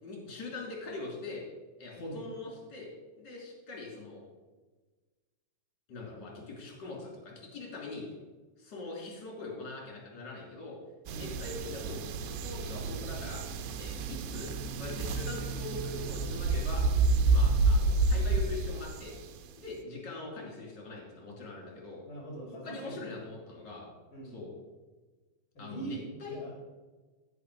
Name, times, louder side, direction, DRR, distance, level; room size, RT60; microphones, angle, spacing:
voice 1, 0.0-1.4 1.8-2.9 3.1-4.2 5.9-8.0 8.6-10.8 11.1-13.4 13.7-16.9 17.3-19.1 19.6-22.0 22.5-23.9 24.2-24.5 25.6-26.4, left 2 dB, 30° left, -3 dB, 2.5 m, -42 dB
voice 2, 2.0-2.3 11.0-11.4 22.0-23.0 24.1-24.4 25.5-26.6, right 2 dB, 50° left, -1 dB, 1.6 m, -43 dB
sound 1, 11.1-19.4, right 3 dB, 85° right, 3.3 m, -29 dB
16.0 x 6.0 x 4.8 m, 1.3 s
omnidirectional pair, 5.7 m